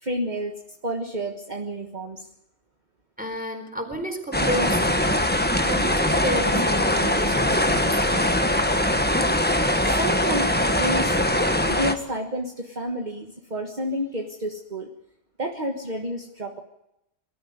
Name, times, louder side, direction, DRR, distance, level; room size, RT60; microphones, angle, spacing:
voice 1, 0.0-0.5 0.8-2.3 9.9-11.2 11.7-14.9 15.4-16.6, equal, 40° right, 2 dB, 1.7 m, -30 dB
voice 2, 3.2-5.1 5.7-8.4, right 1 dB, 5° right, 4 dB, 4.1 m, -31 dB
sound 1, 4.3-11.9, left 1 dB, 10° left, 1.2 m, -22 dB
23.0 x 13.5 x 9.5 m, 0.86 s
omnidirectional pair, 1.1 m